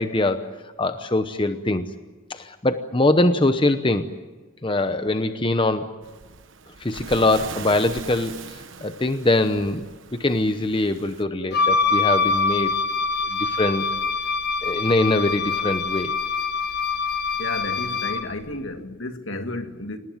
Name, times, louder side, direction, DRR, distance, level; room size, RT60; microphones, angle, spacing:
voice 1, 0.0-1.9 2.3-4.1 4.6-6.0 6.8-9.8 10.1-12.8 13.3-13.8 14.6-16.2, left 2 dB, 25° left, 0.9 m, -23 dB
Waves surf, 6.0-11.2, right 5 dB, 70° right, 1.2 m, -40 dB
Wind instrument woodwind instrument, 11.5-18.3, left 4 dB, 50° left, 1.3 m, -24 dB
voice 2, 17.4-20.0, left 2 dB, 70° left, 1.8 m, -32 dB
26.5 x 19.0 x 9.4 m
head